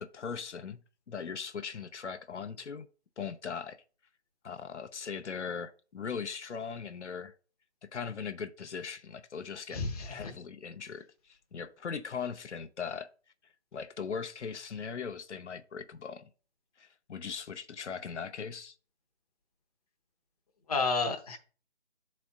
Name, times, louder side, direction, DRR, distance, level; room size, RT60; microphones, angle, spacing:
voice 1, 0.0-2.9 3.2-3.8 4.4-7.3 7.8-13.1 13.7-16.3 16.8-18.7, left 6 dB, 90° left, 0.6 m, -39 dB
voice 2, 9.7-10.3 20.7-21.4, left 3 dB, 35° left, 0.8 m, -31 dB
11.5 x 4.2 x 2.2 m
figure-of-eight pair, 160°, 34 cm